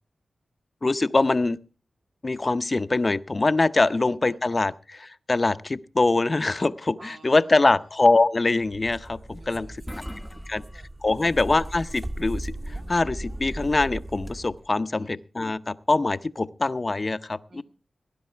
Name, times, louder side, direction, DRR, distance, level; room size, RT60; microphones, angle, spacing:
voice 1, 0.8-1.6 2.2-9.7 10.5-10.6 11.0-17.6, left 3 dB, 40° left, 12 dB, 0.7 m, -23 dB
voice 2, 3.7-4.7 7.0-7.7 9.4-10.8 11.2-11.4 15.0-15.2 17.5-17.6, right 3 dB, 85° right, 1 dB, 2.3 m, -53 dB
sound 1, 8.6-14.6, right 1 dB, 30° right, 1.5 m, -37 dB
sound 2, 9.4-9.5 9.7-11.1 11.5-12.4 14.1-14.7, left 1 dB, 5° left, 0.8 m, -43 dB
18.5 x 10.0 x 4.5 m, 0.35 s
cardioid pair, 55°, 0 cm